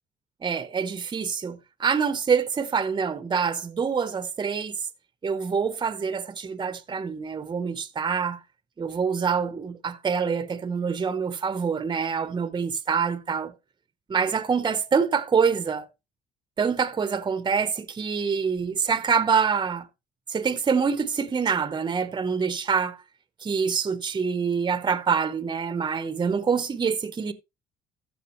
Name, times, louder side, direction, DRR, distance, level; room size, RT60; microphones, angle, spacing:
voice 1, 0.4-4.8 5.2-8.4 8.8-13.5 14.1-15.9 16.6-19.9 20.3-23.0 23.4-27.3, right 6 dB, 25° right, 0.9 m, -26 dB
14.5 x 5.9 x 3.0 m
cardioid pair, 110°, 17 cm